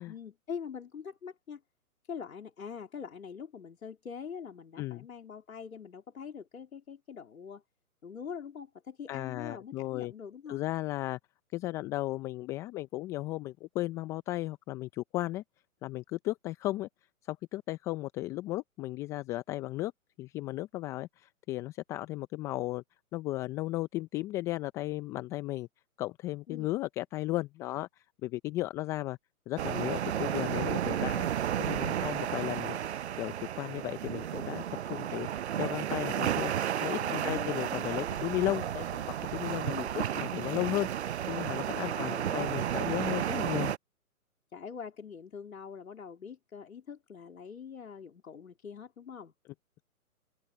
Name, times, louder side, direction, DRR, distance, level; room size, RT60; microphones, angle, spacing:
voice 1, 0.1-1.6 2.0-7.6 8.0-10.6 26.5-26.7 36.8-38.3 39.6-39.9 41.8-42.5 44.5-49.3, left 6 dB, 65° left, 3.2 m, -44 dB
voice 2, 9.1-10.1 10.5-11.2 11.5-15.4 15.8-16.9 17.2-19.9 20.2-22.8 23.1-25.7 26.0-29.2 29.5-31.3 31.6-35.3 35.6-40.9 41.3-43.7, left 17 dB, 5° left, 0.6 m, -35 dB
sound 1, 29.6-43.8, right 10 dB, 50° right, 0.9 m, -33 dB
open air
figure-of-eight pair, 130°, 44 cm